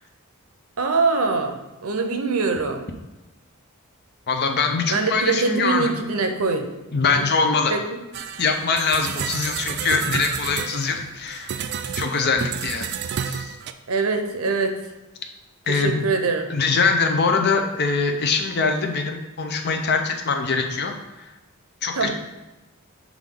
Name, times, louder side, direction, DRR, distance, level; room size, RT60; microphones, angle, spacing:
voice 1, 0.8-2.8 4.9-6.7 7.1-7.3 7.7-7.8 13.9-14.8 15.7-16.5 21.9-22.1, right 4 dB, 75° right, 6 dB, 0.7 m, -23 dB
voice 2, 4.3-5.9 6.9-7.8 8.4-11.6 11.9-13.6 15.7-16.0 16.5-21.3 21.8-22.1, left 4 dB, 45° left, 4 dB, 0.6 m, -23 dB
sound 1, 8.1-13.7, right 7 dB, 50° right, 0.3 m, -30 dB
7.2 x 3.6 x 3.8 m, 1.1 s
head